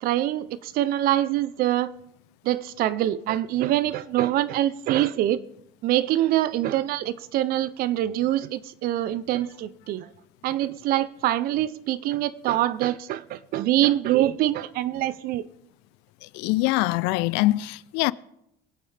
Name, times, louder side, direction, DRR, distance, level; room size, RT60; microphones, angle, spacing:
voice 1, 0.0-1.9 2.4-5.4 5.8-10.1 10.4-15.5, right 13 dB, 60° right, 0.6 m, -24 dB
voice 2, 16.2-18.1, left 19 dB, 80° left, 0.4 m, -24 dB
24.0 x 8.4 x 3.4 m
cardioid pair, 125°, 17 cm